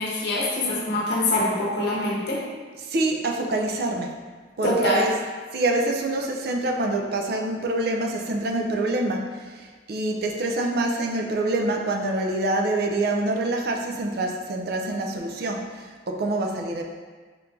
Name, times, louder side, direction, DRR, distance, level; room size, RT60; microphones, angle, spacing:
voice 1, 0.0-2.5 4.6-5.1, left 1 dB, 55° left, -4 dB, 0.8 m, -24 dB
voice 2, 2.8-4.2 4.6-5.1 5.5-16.8, right 2 dB, 50° right, 2 dB, 0.4 m, -26 dB
4.4 x 2.5 x 3.6 m, 1.5 s
head